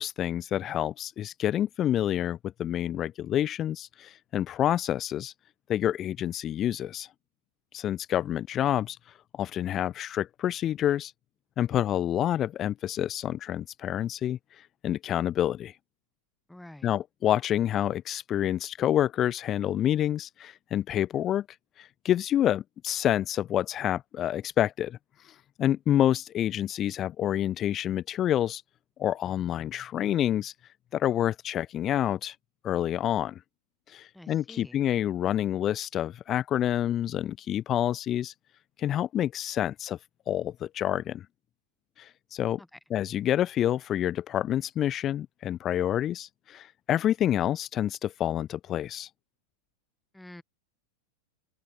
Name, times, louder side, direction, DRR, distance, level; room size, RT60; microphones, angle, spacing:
voice 1, 0.0-5.3 5.7-7.1 7.7-9.0 9.4-11.1 11.6-14.4 14.8-15.7 16.8-21.4 22.0-25.0 25.6-28.6 29.0-30.5 30.9-32.3 32.6-33.4 33.9-38.3 38.8-40.0 40.3-41.2 42.3-42.6 42.9-49.1, left 11 dB, 30° left, 0.3 m, -28 dB
voice 2, 16.5-16.9 34.1-34.8 42.6-42.8 50.1-50.4, left 1 dB, 5° left, 1.2 m, -48 dB
open air
figure-of-eight pair, 90°, 0 cm